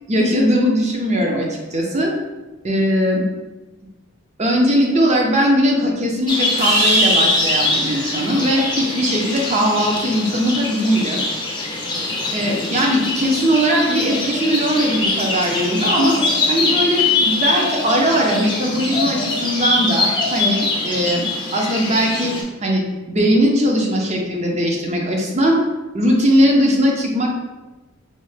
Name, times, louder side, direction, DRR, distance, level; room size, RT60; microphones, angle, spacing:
voice 1, 0.1-2.1 2.6-3.2 4.4-11.2 12.3-16.2 16.5-21.2 21.5-22.3 22.6-22.8 23.1-25.6 25.9-27.3, equal, 30° right, 0 dB, 0.5 m, -19 dB
sound 1, 6.3-22.4, left 2 dB, 20° left, 0.5 m, -22 dB
sound 2, 6.6-10.1, right 6 dB, 85° right, 0.4 m, -31 dB
4.2 x 2.1 x 3.2 m, 1.1 s
head